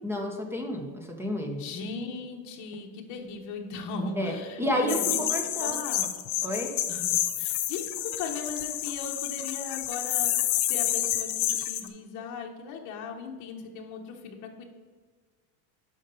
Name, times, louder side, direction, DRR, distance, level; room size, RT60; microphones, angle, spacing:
voice 1, 0.0-1.6 4.2-5.8 6.4-6.7, equal, 5° right, 2 dB, 0.4 m, -30 dB
voice 2, 1.6-5.2 5.6-6.1 6.9-7.9 8.2-14.7, left 4 dB, 45° left, 1 dB, 1.0 m, -38 dB
sound 1, 4.9-11.9, left 13 dB, 85° left, 0.8 m, -29 dB
7.3 x 5.3 x 5.3 m, 1.4 s
cardioid pair, 165°, 41 cm